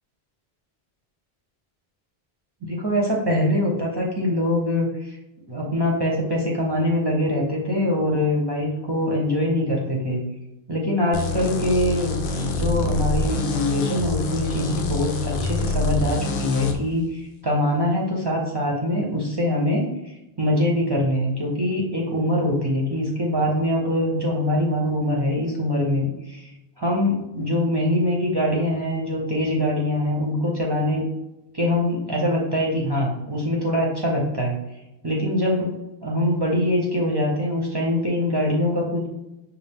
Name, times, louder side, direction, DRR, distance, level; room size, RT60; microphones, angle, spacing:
voice 1, 2.6-5.2 5.5-10.2 10.7-26.5 26.8-31.1 31.5-34.6 35.0-39.1, left 1 dB, 30° right, -3 dB, 0.6 m, -23 dB
sound 1, 11.1-16.8, left 2 dB, 85° left, 0.8 m, -26 dB
5.5 x 2.4 x 3.5 m, 0.92 s
omnidirectional pair, 1.0 m